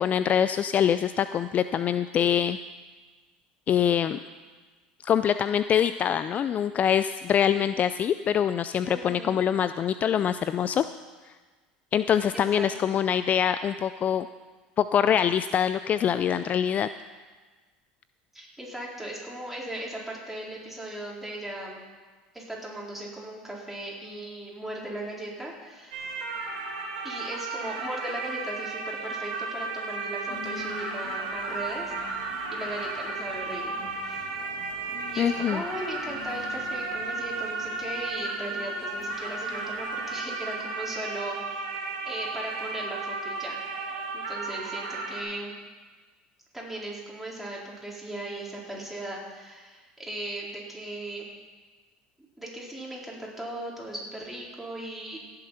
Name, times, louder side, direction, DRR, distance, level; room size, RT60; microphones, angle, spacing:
voice 1, 0.0-2.6 3.7-4.2 5.0-10.9 11.9-14.3 14.8-16.9 35.2-35.6, left 9 dB, 40° left, 13 dB, 0.4 m, -24 dB
voice 2, 8.8-9.4 12.3-13.0 18.3-21.8 22.3-26.0 27.0-31.9 32.5-34.2 35.1-41.4 42.1-45.5 46.5-51.3 52.4-55.2, right 1 dB, 5° right, -4 dB, 4.3 m, -38 dB
sound 1, 25.9-45.2, right 3 dB, 80° right, 2.7 m, -34 dB
sound 2, 30.3-40.2, left 7 dB, 60° left, 1.7 m, -48 dB
16.5 x 7.7 x 5.7 m, 1.4 s
hypercardioid pair, 85°, 4 cm